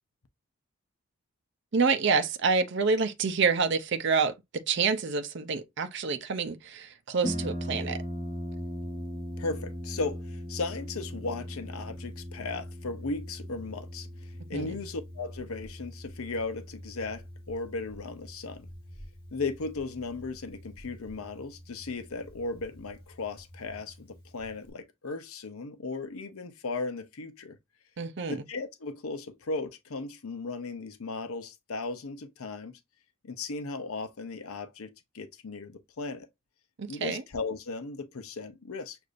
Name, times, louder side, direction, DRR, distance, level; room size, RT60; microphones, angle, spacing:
voice 1, 1.7-8.0 14.5-14.7 28.0-28.4 36.8-37.2, right 5 dB, 55° right, 0.5 m, -27 dB
Harp, 7.2-24.7, equal, 25° left, 1.7 m, -40 dB
voice 2, 9.4-18.7 19.3-27.6 28.3-32.8 33.2-36.3 36.9-39.0, left 3 dB, 85° left, 0.7 m, -36 dB
6.6 x 2.5 x 2.5 m
head